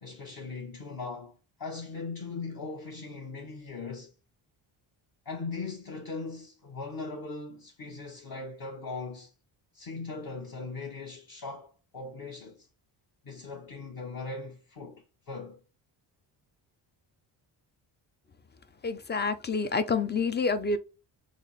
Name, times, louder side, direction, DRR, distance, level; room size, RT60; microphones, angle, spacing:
voice 1, 0.0-4.1 5.2-9.3 9.7-12.7 13.2-15.6, left 3 dB, 45° left, 0.9 m, -39 dB
voice 2, 18.8-20.8, left 4 dB, 25° left, 0.3 m, -28 dB
3.3 x 2.0 x 3.9 m
cardioid pair, 75°, 49 cm